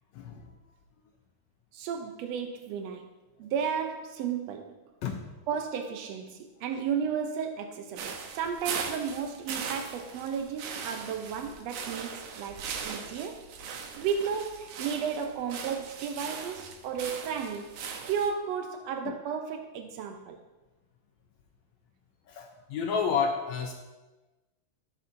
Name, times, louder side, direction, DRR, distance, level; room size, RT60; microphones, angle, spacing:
voice 1, 1.7-3.1 3.4-4.8 5.5-13.4 13.9-17.7 18.0-20.4, right 7 dB, 90° right, 5 dB, 1.4 m, -33 dB
voice 2, 5.0-5.4 19.0-19.2 22.3-23.7, left 6 dB, 80° left, 4 dB, 1.6 m, -30 dB
sound 1, 8.0-18.3, right 6 dB, 70° right, 2.0 m, -39 dB
14.0 x 8.2 x 2.6 m, 1.1 s
omnidirectional pair, 3.8 m